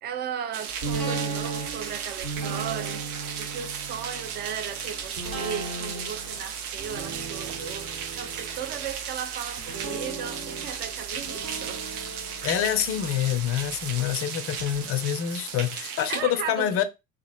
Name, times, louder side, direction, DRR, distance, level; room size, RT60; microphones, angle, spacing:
voice 1, 0.0-3.0 3.4-11.8 16.1-16.8, right 8 dB, 25° right, 0.4 m, -36 dB
sound 1, 0.5-16.2, right 7 dB, 80° right, 0.6 m, -36 dB
sound 2, 0.8-13.7 14.1-14.2, right 4 dB, 50° right, 1.0 m, -37 dB
voice 2, 12.4-16.8, left 11 dB, 35° left, 0.5 m, -26 dB
2.9 x 2.4 x 2.4 m
hypercardioid pair, 65°, 44 cm